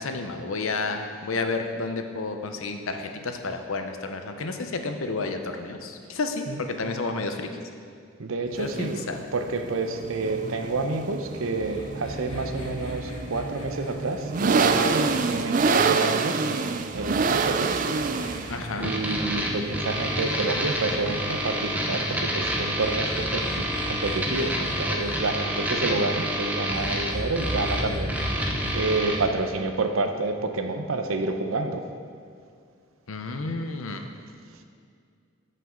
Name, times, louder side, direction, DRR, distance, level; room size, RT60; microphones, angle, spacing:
voice 1, 0.0-7.5 8.6-9.2 18.5-18.9 33.1-34.1, left 3 dB, 80° left, 6 dB, 0.7 m, -31 dB
voice 2, 8.2-9.0 9.3-17.7 18.8-28.2 28.7-31.8, right 3 dB, 80° right, 6 dB, 0.7 m, -29 dB
sound 1, 8.5-26.5, right 4 dB, 40° right, 0.3 m, -28 dB
sound 2, 11.5-16.0 16.9-21.0 22.4-25.1 26.7-29.5, equal, 25° left, 1.4 m, -37 dB
sound 3, 18.8-29.2, equal, 5° right, 0.6 m, -28 dB
13.5 x 5.4 x 3.8 m, 2.2 s
head